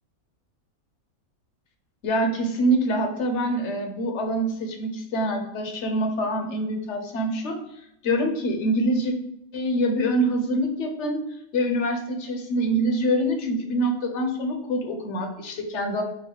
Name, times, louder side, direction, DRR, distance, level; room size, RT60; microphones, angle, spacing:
voice 1, 2.0-7.6 8.0-9.1 9.5-11.2 11.5-16.0, right 1 dB, 60° left, 4 dB, 1.0 m, -25 dB
3.9 x 2.6 x 4.5 m, 0.79 s
omnidirectional pair, 1.5 m